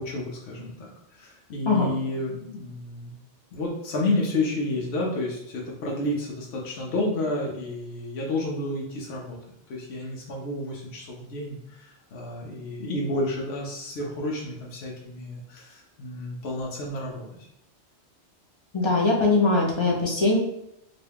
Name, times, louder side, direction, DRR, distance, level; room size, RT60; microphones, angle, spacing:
voice 1, 0.0-3.1 3.5-9.4 9.7-17.3, left 2 dB, 70° left, -2 dB, 0.9 m, -30 dB
voice 2, 18.7-20.4, left 3 dB, 30° left, -2 dB, 0.6 m, -21 dB
3.9 x 2.2 x 3.4 m, 0.78 s
omnidirectional pair, 1.1 m